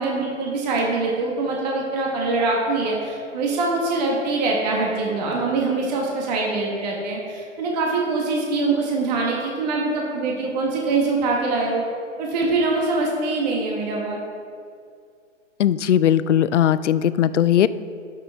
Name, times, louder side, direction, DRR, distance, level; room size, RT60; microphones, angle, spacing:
voice 1, 0.0-11.8 12.2-14.2, right 3 dB, 35° right, -1 dB, 1.3 m, -23 dB
voice 2, 15.6-17.7, left 10 dB, 70° left, 16 dB, 0.5 m, -18 dB
13.0 x 5.8 x 3.5 m, 2.2 s
hypercardioid pair, 140°, 37 cm